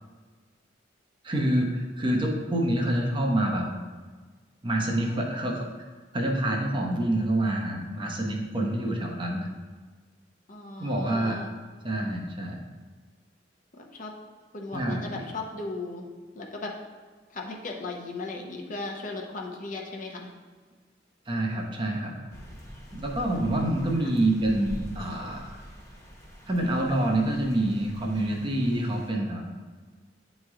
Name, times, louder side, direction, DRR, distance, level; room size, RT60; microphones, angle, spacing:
voice 1, 1.2-3.7 4.6-5.7 6.1-9.5 10.8-11.4 11.8-12.6 14.7-15.2 21.3-22.2 22.9-25.6 26.5-29.4, right 1 dB, 30° right, 0 dB, 0.8 m, -27 dB
voice 2, 4.9-5.2 10.5-11.5 13.7-14.1 14.5-16.1 16.3-16.8 17.3-20.3 24.0-24.1, left 3 dB, 45° left, 0 dB, 0.8 m, -37 dB
sound 1, 22.3-29.1, equal, 20° left, 1.2 m, -44 dB
9.0 x 3.1 x 3.6 m, 1.4 s
head